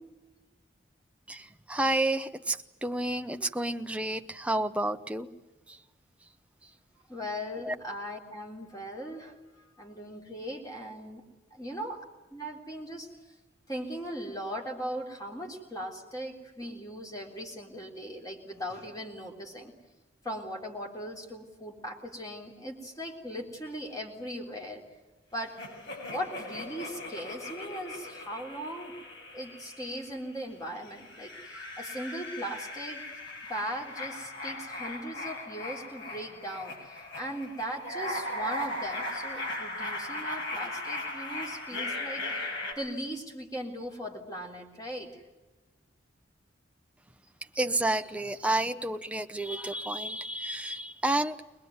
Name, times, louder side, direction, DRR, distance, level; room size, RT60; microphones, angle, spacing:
voice 1, 1.3-5.3 7.7-7.8 47.6-51.4, right 1 dB, 5° right, 7 dB, 0.8 m, -30 dB
voice 2, 7.1-11.2 11.5-12.0 12.3-13.1 13.7-19.7 20.2-24.8 25.3-25.6 26.1-29.0 29.3-33.0 33.5-42.3 42.8-45.2, equal, 20° left, 0 dB, 3.7 m, -39 dB
sound 1, 25.6-30.3 30.8-42.7, left 2 dB, 60° left, 6.8 m, -38 dB
23.0 x 21.0 x 9.6 m, 1.1 s
head